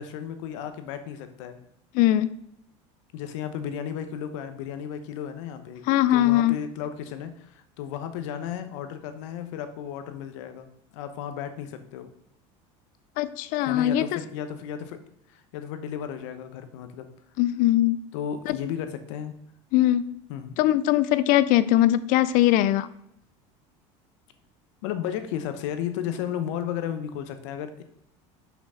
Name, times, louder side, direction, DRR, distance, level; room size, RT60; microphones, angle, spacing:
voice 1, 0.0-1.6 3.1-5.8 6.1-10.7 10.9-12.1 13.6-15.0 15.3-17.1 18.1-19.3 20.3-20.5 24.8-27.8, left 9 dB, 80° left, 9 dB, 1.1 m, -34 dB
voice 2, 1.9-2.3 5.9-6.6 13.2-14.2 17.4-18.0 18.5-18.6 19.7-20.1 20.6-22.9, left 13 dB, 65° left, 16 dB, 0.6 m, -21 dB
6.1 x 6.1 x 5.6 m, 0.74 s
supercardioid pair, 105°, 15 cm